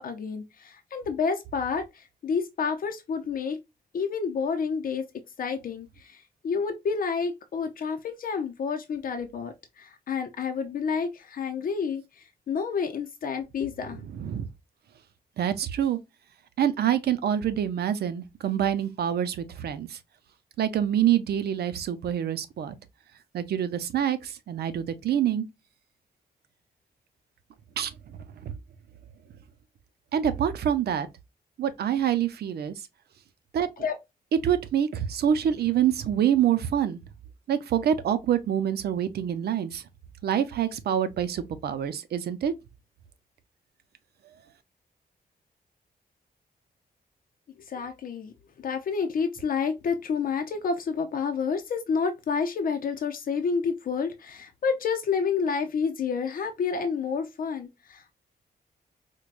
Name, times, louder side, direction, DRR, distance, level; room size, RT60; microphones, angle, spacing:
voice 1, 0.0-3.6 3.9-5.0 5.4-14.1 33.8-34.0 47.7-58.1, left 5 dB, 60° left, 0.6 m, -29 dB
voice 2, 14.1-14.5 15.4-16.0 16.6-20.0 20.6-22.8 23.3-25.4 27.8-28.5 30.1-31.1 31.6-32.8 33.5-33.7 34.4-37.0 37.5-39.8 40.2-42.5, right 9 dB, 80° right, 0.5 m, -26 dB
4.5 x 2.2 x 2.4 m
wide cardioid pair, 155°, 17 cm